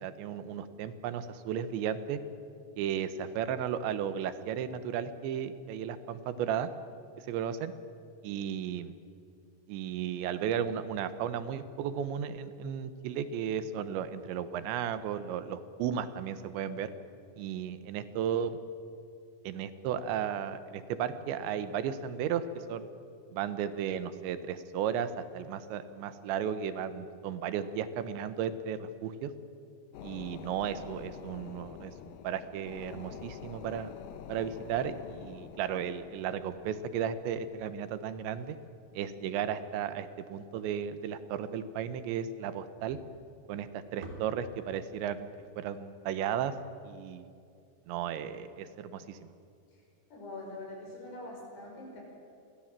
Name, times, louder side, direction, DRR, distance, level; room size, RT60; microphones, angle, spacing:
voice 1, 0.0-2.2 2.8-6.7 7.3-7.7 8.2-8.9 9.7-16.9 17.4-18.6 19.5-22.9 23.3-29.3 30.0-31.9 32.2-33.9 34.3-38.6 38.9-43.0 43.5-45.3 45.6-46.5 46.9-47.3 47.9-49.3, right 8 dB, 90° right, 12 dB, 3.4 m, -34 dB
sound 1, 29.9-39.9 40.3-40.4, left 9 dB, 90° left, 1.8 m, -48 dB
sound 2, 42.9-47.2, right 3 dB, 65° right, 5.4 m, -52 dB
voice 2, 50.1-52.0, left 2 dB, 70° left, -1 dB, 7.8 m, -43 dB
28.0 x 22.0 x 7.5 m, 2.4 s
omnidirectional pair, 5.0 m